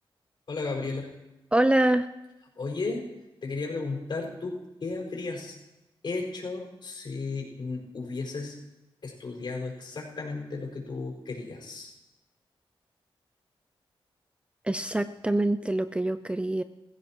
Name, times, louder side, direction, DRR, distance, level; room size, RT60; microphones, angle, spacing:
voice 1, 0.5-1.1 2.6-3.1 3.4-5.6 6.0-8.5 9.0-11.9, left 3 dB, 55° left, -2 dB, 5.2 m, -34 dB
voice 2, 1.5-2.1 14.6-16.6, right 1 dB, 10° right, 11 dB, 0.5 m, -25 dB
21.5 x 15.5 x 3.0 m, 0.99 s
wide cardioid pair, 95°, 9 cm